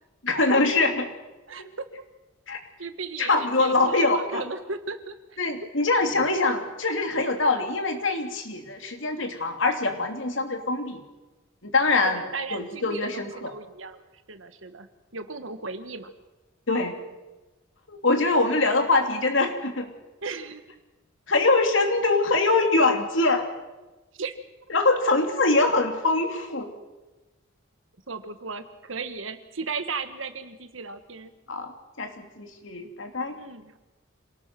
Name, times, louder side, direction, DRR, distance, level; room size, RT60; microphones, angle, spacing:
voice 1, 0.2-1.1 1.6-1.7 2.5-2.6 3.2-4.4 5.4-11.0 11.6-12.2 12.5-13.5 16.7-16.9 17.9-19.9 21.3-23.5 24.7-26.7 31.5-31.7 32.0-33.3, left 3 dB, 70° left, 5 dB, 3.0 m, -23 dB
voice 2, 1.5-1.8 2.8-5.7 12.0-14.0 14.3-14.9 15.1-16.1 20.2-20.6 24.2-24.3 28.1-31.3 33.4-33.8, right 4 dB, 85° right, 9 dB, 1.7 m, -36 dB
26.5 x 18.5 x 6.1 m, 1.1 s
head